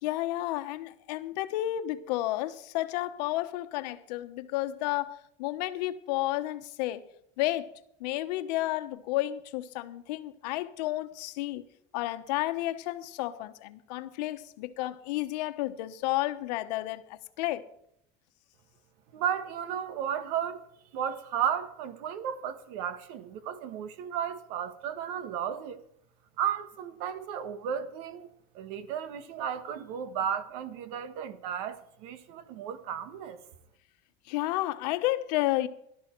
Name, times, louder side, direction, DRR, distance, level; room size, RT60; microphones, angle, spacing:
voice 1, 0.0-7.0 7.4-7.7 8.0-11.6 11.9-17.6 34.3-35.7, left 16 dB, 85° left, 1.1 m, -31 dB
voice 2, 19.1-20.6 20.9-25.8 26.4-28.3 28.5-33.4, right 8 dB, 65° right, 1.4 m, -34 dB
17.5 x 12.5 x 4.6 m
cardioid pair, 175°, 21 cm